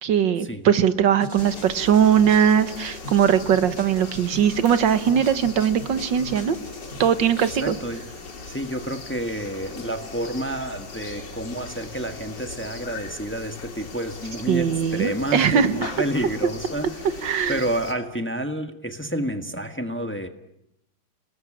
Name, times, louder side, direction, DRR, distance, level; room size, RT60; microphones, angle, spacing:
voice 1, 0.0-6.6 7.0-7.8 14.5-15.9 17.2-17.6, right 8 dB, 85° right, 12 dB, 1.9 m, -20 dB
sound 1, 1.2-7.1, left 1 dB, 50° left, 4.1 m, -41 dB
sound 2, 1.4-17.9, left 4 dB, 70° left, 3.1 m, -39 dB
voice 2, 7.6-8.0 8.5-20.3, right 1 dB, 5° left, 7 dB, 1.3 m, -29 dB
28.5 x 20.0 x 8.7 m, 0.83 s
omnidirectional pair, 1.9 m